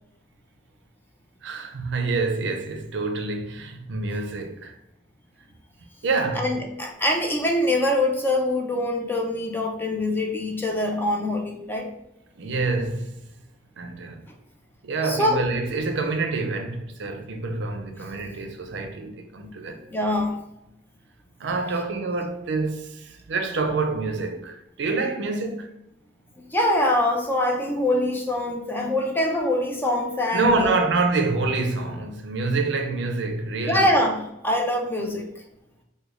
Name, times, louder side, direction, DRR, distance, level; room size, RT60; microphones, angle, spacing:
voice 1, 1.4-4.7 6.0-6.5 12.4-13.2 13.8-14.2 14.8-19.9 21.4-25.7 30.3-34.0, right 3 dB, 70° right, 0.5 m, -27 dB
voice 2, 6.3-11.9 15.0-15.4 19.9-20.4 26.4-30.9 33.7-35.3, left 1 dB, 10° left, 0.4 m, -24 dB
3.0 x 2.2 x 3.4 m
head